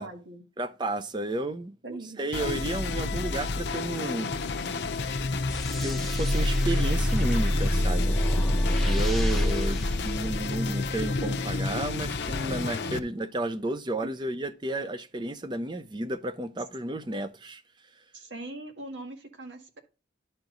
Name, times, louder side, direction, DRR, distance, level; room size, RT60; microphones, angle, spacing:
voice 1, 0.0-0.4 1.8-2.3 14.0-14.1 18.1-19.8, right 2 dB, 85° right, 1.9 m, -41 dB
voice 2, 0.6-4.3 5.2-5.3 5.8-8.2 8.8-17.6, right 1 dB, 25° right, 0.6 m, -32 dB
sound 1, 2.3-13.0, left 3 dB, 75° left, 0.8 m, -31 dB
sound 2, 5.5-10.8, equal, ahead, 1.1 m, -26 dB
11.5 x 4.5 x 3.9 m
head